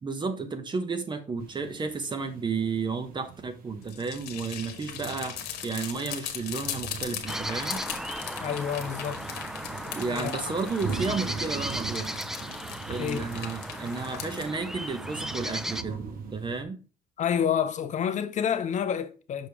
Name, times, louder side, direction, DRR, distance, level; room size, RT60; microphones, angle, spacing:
voice 1, 0.0-5.4 5.6-7.8 9.9-12.1 12.9-16.8, right 4 dB, 25° right, 0.9 m, -32 dB
sound 1, 1.4-16.6, right 5 dB, 60° right, 1.2 m, -41 dB
sound 2, 3.8-14.5, left 10 dB, 75° left, 1.2 m, -39 dB
sound 3, 7.3-15.8, equal, 5° right, 0.4 m, -36 dB
voice 2, 8.4-9.3 10.1-10.4 13.0-13.2 17.2-19.5, left 8 dB, 45° left, 0.6 m, -28 dB
6.2 x 5.1 x 3.4 m
cardioid pair, 110°, 17 cm